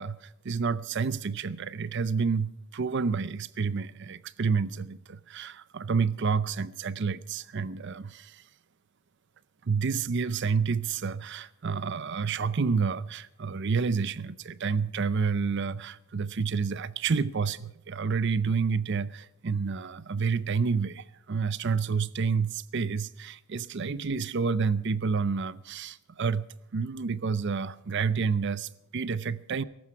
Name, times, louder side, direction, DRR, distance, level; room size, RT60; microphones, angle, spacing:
voice 1, 0.0-8.5 9.6-29.6, right 5 dB, 55° right, 0.5 m, -29 dB
18.0 x 14.5 x 4.7 m
head